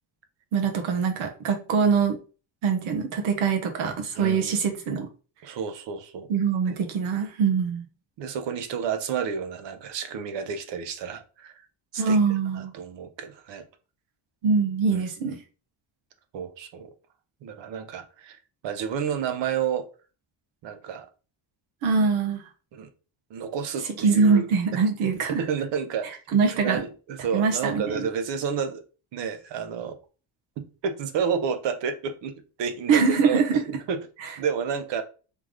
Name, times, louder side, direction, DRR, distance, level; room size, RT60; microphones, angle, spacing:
voice 1, 0.5-2.2 2.6-5.1 6.3-7.8 12.0-12.7 14.4-15.4 21.8-22.4 24.0-25.4 26.3-26.8 27.3-28.0 32.9-33.6, right 5 dB, 85° right, 1.2 m, -23 dB
voice 2, 4.1-4.5 5.4-6.3 8.2-11.6 11.9-13.7 14.9-15.4 16.3-16.9 17.4-18.4 18.6-19.9 20.6-21.1 22.7-22.9 23.3-24.4 25.3-26.2 26.6-28.8 29.1-30.0 30.6-33.4 33.9-34.1 34.4-35.0, right 7 dB, 65° right, 0.8 m, -30 dB
3.6 x 3.5 x 3.3 m
cardioid pair, 140°, 47 cm